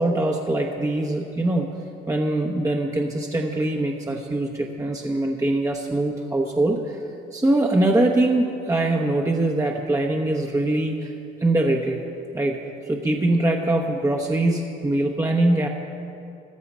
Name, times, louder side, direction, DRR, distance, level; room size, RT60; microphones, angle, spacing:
voice 1, 0.0-1.7 2.1-7.0 7.3-11.1 11.4-12.0 12.3-12.6 12.9-15.7, right 2 dB, 15° right, 1 dB, 1.0 m, -22 dB
15.0 x 12.5 x 5.5 m, 2.6 s
cardioid pair, 90°, 20 cm